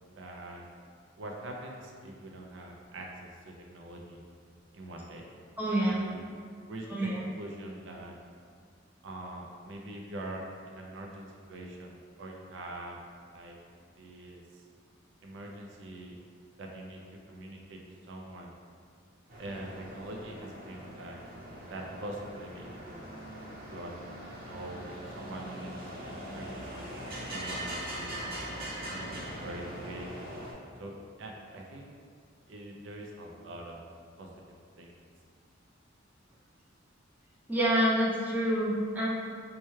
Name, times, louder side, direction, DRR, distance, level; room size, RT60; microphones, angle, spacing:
voice 1, 0.1-0.6 1.2-4.2 4.7-5.3 5.8-6.2 6.7-6.9 7.1-8.1 9.0-13.0 13.3-13.6 14.0-14.6 15.2-16.2 16.6-17.0 17.3-17.8 18.1-18.5 19.4-21.2 21.6-23.2 23.7-24.0 24.3-28.2 28.9-30.1 30.8-31.9 32.5-33.8 34.2-34.3 34.8-35.0, right 1 dB, 70° right, 0 dB, 0.4 m, -44 dB
voice 2, 5.6-6.0 6.9-7.3 37.5-39.1, right 1 dB, 10° right, -7 dB, 0.5 m, -27 dB
sound 1, 19.3-30.5, right 1 dB, 50° right, 0.9 m, -41 dB
4.3 x 2.2 x 3.1 m, 2.1 s
head